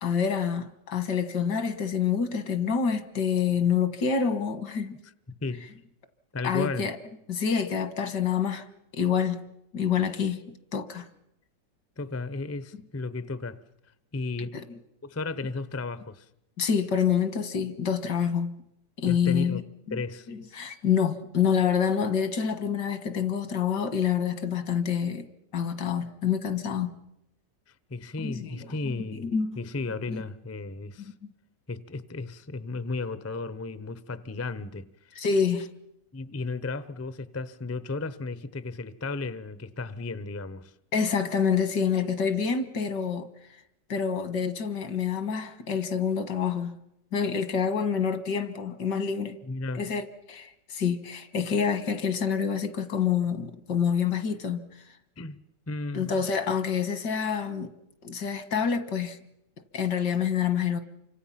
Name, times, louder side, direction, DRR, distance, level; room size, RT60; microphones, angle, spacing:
voice 1, 0.0-5.0 6.4-7.0 7.3-8.7 8.9-9.4 9.7-10.4 10.7-11.1 14.5-14.8 16.6-18.6 19.0-19.6 19.9-20.0 20.3-25.3 25.5-26.9 28.2-29.6 30.1-30.2 31.0-31.1 35.2-35.7 40.9-43.3 43.9-46.8 47.1-49.4 49.7-54.6 55.9-57.7 58.0-59.2 59.7-60.8, left 7 dB, 80° left, 2.1 m, -27 dB
voice 2, 6.3-6.9 12.0-13.6 14.1-14.5 15.0-16.3 19.0-19.6 19.9-20.3 27.9-31.1 31.7-34.8 36.1-40.7 49.4-49.8 55.2-56.2, left 3 dB, 20° left, 0.4 m, -34 dB
29.0 x 25.0 x 5.8 m
omnidirectional pair, 1.9 m